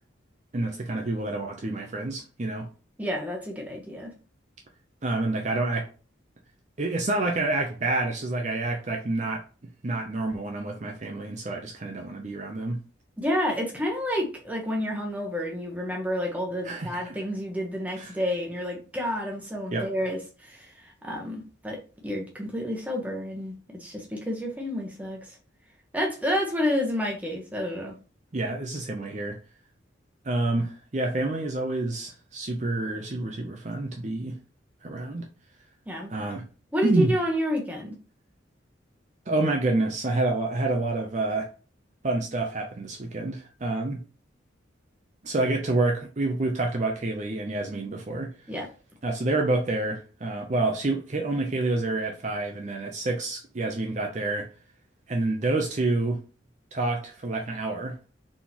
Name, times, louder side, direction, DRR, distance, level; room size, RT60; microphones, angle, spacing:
voice 1, 0.5-2.7 5.0-5.9 6.8-9.4 9.8-12.8 16.6-17.2 18.0-18.2 19.7-19.9 28.3-29.4 30.2-34.4 34.8-35.3 36.1-36.5 36.8-37.2 39.3-41.5 42.0-44.0 45.2-48.3 49.0-54.5 55.1-56.2 56.7-58.0, right 2 dB, 40° right, 0.6 m, -28 dB
voice 2, 3.0-4.1 13.2-23.5 23.8-25.4 25.9-27.9 35.9-36.1 36.7-38.0 48.5-48.7, equal, 10° right, 1.0 m, -30 dB
4.1 x 3.6 x 2.9 m
head